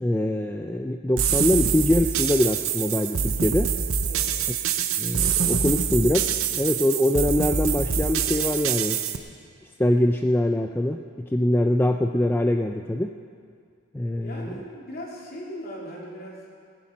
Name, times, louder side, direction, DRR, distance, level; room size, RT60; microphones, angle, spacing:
voice 1, 0.0-3.7 5.0-9.0 9.8-13.1 13.9-14.5, left 1 dB, 10° left, 4 dB, 0.3 m, -23 dB
sound 1, 1.2-9.2, right 7 dB, 80° right, 0.8 m, -25 dB
voice 2, 4.0-4.4 14.2-16.5, equal, 45° left, -3 dB, 3.0 m, -38 dB
19.5 x 10.0 x 5.2 m, 2.2 s
head